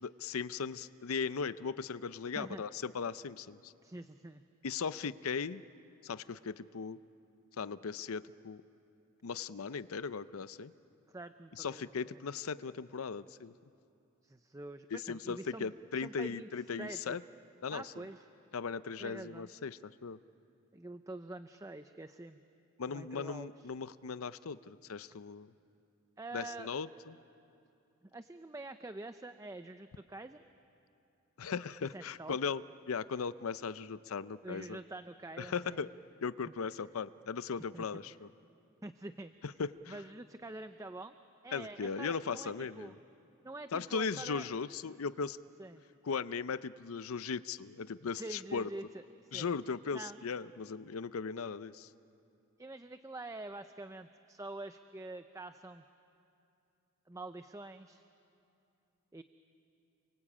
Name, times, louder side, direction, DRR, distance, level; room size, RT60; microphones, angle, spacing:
voice 1, 0.0-3.7 4.6-5.6 6.0-7.0 7.6-8.6 9.2-10.7 11.5-13.5 14.9-17.2 17.6-17.9 18.5-20.2 22.8-25.5 26.3-27.2 31.4-34.8 35.4-35.9 36.2-38.3 39.4-40.0 41.5-42.9 43.7-45.4 46.0-48.7 49.3-51.9, left 5 dB, 80° left, 15 dB, 0.6 m, -38 dB
voice 2, 3.8-4.4 11.1-12.2 14.2-16.5 16.8-17.2 17.7-18.3 19.0-19.5 20.7-22.4 22.9-23.7 26.2-26.7 28.1-30.4 31.9-32.4 34.4-35.8 36.5-36.6 37.7-37.9 38.8-39.3 39.9-41.1 41.4-42.9 43.4-44.5 45.6-45.8 48.2-49.0 49.3-49.5 49.9-50.2 52.6-55.8 57.1-58.0 59.1-59.2, right 2 dB, 15° right, 9 dB, 0.6 m, -46 dB
29.0 x 23.5 x 8.6 m, 2.7 s
head